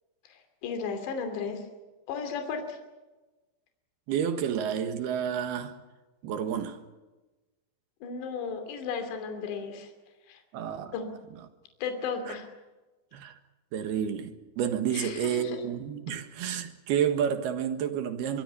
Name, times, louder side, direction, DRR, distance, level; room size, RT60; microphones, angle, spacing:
voice 1, 0.2-1.7 2.1-2.8 8.0-9.9 10.3-10.4 10.9-11.2 11.8-12.5 14.9-15.6 16.1-16.2, left 5 dB, 65° left, 4.9 m, -35 dB
voice 2, 4.1-5.7 6.2-6.8 10.5-10.9 12.3-12.4 13.1-13.3 13.7-18.4, right 8 dB, 65° right, 3.2 m, -30 dB
24.0 x 23.5 x 6.9 m
omnidirectional pair, 5.5 m